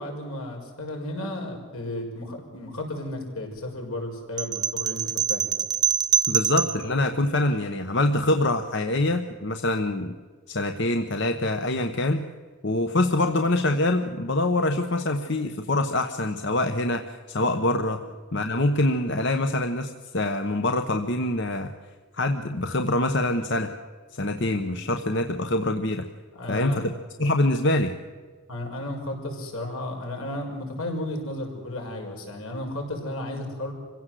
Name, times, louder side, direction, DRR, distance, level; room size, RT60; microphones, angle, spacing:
voice 1, 0.0-5.5 17.9-18.1 26.3-26.8 28.5-33.7, left 1 dB, 80° left, 1 dB, 6.0 m, -33 dB
sound 1, 4.4-6.8, right 7 dB, 20° right, 0.7 m, -24 dB
voice 2, 6.3-10.1 10.5-12.2 12.6-18.0 18.3-21.7 22.1-23.7 24.1-26.0 26.5-26.9 27.2-27.9, left 2 dB, 55° left, 6 dB, 1.0 m, -25 dB
26.5 x 16.5 x 7.7 m, 1.5 s
head